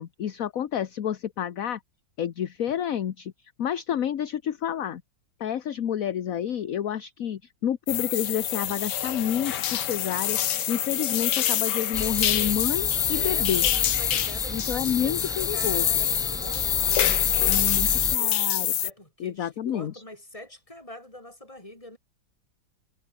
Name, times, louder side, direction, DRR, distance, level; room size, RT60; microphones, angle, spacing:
voice 1, 0.0-1.8 2.2-3.3 3.6-5.0 5.4-13.7 14.5-15.9 17.5-18.7 19.2-20.0, left 9 dB, 55° left, 1.3 m, -29 dB
sound 1, 7.9-18.9, left 10 dB, 70° left, 1.7 m, -26 dB
sound 2, 11.9-18.2, equal, ahead, 3.6 m, -35 dB
voice 2, 13.1-15.2 15.5-18.4 18.7-22.0, left 1 dB, 15° left, 5.5 m, -44 dB
omnidirectional pair, 2.0 m